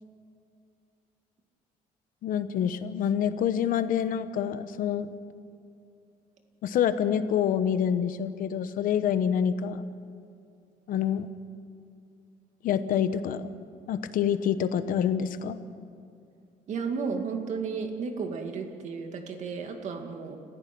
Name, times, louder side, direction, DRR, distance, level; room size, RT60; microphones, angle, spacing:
voice 1, 2.2-5.1 6.6-9.8 10.9-11.3 12.6-13.5 13.9-15.6, left 8 dB, 65° left, 11 dB, 1.1 m, -27 dB
voice 2, 16.7-20.4, right 5 dB, 50° right, 4 dB, 2.3 m, -33 dB
29.5 x 15.0 x 6.1 m, 2.5 s
cardioid pair, 165°, 15 cm